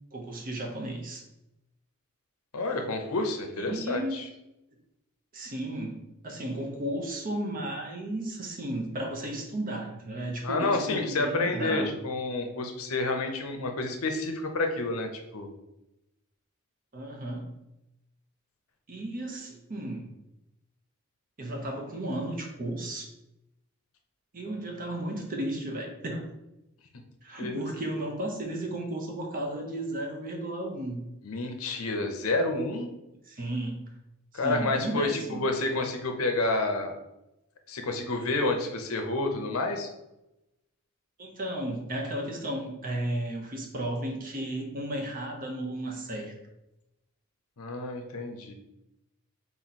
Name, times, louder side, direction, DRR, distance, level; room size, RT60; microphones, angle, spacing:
voice 1, 0.1-1.2 3.6-4.2 5.3-11.9 16.9-17.5 18.9-20.0 21.4-23.1 24.3-26.3 27.2-31.1 33.3-33.9 34.3-35.5 35.8-35.9 41.2-46.3, right 1 dB, 40° right, 2 dB, 0.9 m, -34 dB
voice 2, 2.5-4.2 10.4-15.5 27.4-27.6 31.2-32.9 34.3-37.0 37.7-39.9 47.6-48.5, left 2 dB, 90° left, 5 dB, 0.7 m, -29 dB
4.1 x 3.0 x 4.1 m, 0.91 s
head